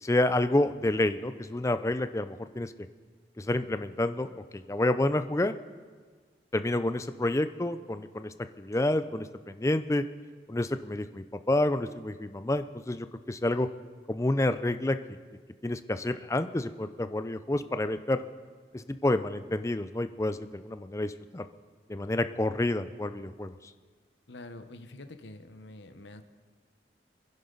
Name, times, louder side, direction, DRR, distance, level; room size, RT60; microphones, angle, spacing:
voice 1, 0.0-2.7 3.4-4.3 4.7-5.5 6.5-10.0 10.5-13.7 14.1-15.0 15.6-18.2 18.7-21.4 21.9-23.5, left 1 dB, 15° left, 11 dB, 0.5 m, -29 dB
voice 2, 24.3-26.2, left 2 dB, 80° left, 8 dB, 1.0 m, -46 dB
27.0 x 11.0 x 4.0 m, 1.5 s
head